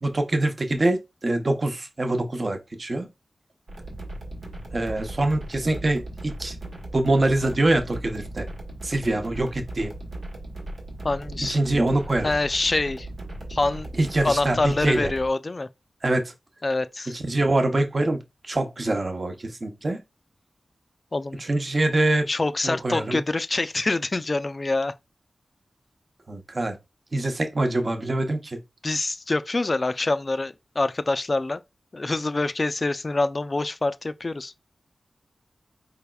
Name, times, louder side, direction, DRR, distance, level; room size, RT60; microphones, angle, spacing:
voice 1, 0.0-3.1 4.7-6.6 6.9-8.5 8.8-9.9 11.4-12.3 14.0-15.1 16.0-16.3 17.1-20.0 21.4-22.3 22.6-23.2 26.3-26.8 27.1-28.6, right 2 dB, 40° right, 0.7 m, -24 dB
sound 1, 3.7-15.3, right 1 dB, 90° right, 1.4 m, -37 dB
voice 2, 11.0-11.6 12.2-13.1 13.5-13.9 14.2-15.7 16.6-17.1 21.1-21.4 22.3-24.9 28.8-31.6 31.9-34.7, left 2 dB, 40° left, 0.3 m, -25 dB
4.9 x 3.4 x 2.2 m
wide cardioid pair, 75°, 0 cm